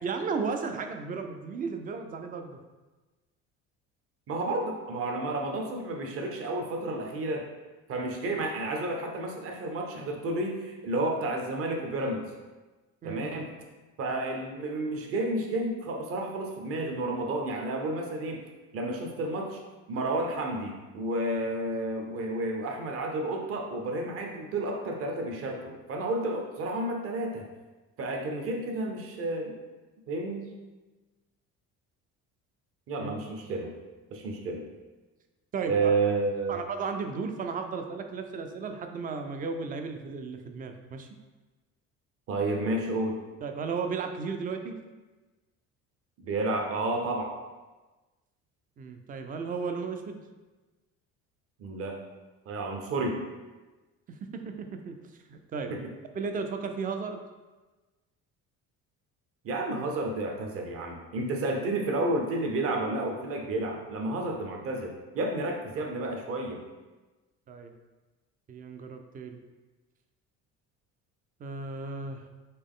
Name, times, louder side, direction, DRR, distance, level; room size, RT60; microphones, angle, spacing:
voice 1, 0.0-2.6 13.0-13.3 33.0-33.1 35.5-35.9 36.5-41.1 43.4-44.7 48.8-50.2 54.1-55.0 55.3-55.7 56.1-57.2 67.5-67.7 68.5-69.4 71.4-72.2, right 5 dB, 30° right, 6 dB, 0.3 m, -34 dB
voice 2, 4.3-7.5 7.9-12.3 13.0-13.5 14.0-18.4 18.7-19.6 19.9-27.5 28.0-29.6 30.1-30.5 32.9-33.7 34.1-34.7 35.6-36.6 42.3-43.2 46.2-47.4 51.6-52.0 52.5-53.2 55.7-55.9 59.4-66.6, right 2 dB, 45° right, 2 dB, 0.8 m, -31 dB
4.2 x 3.1 x 3.6 m, 1.2 s
cardioid pair, 140°, 31 cm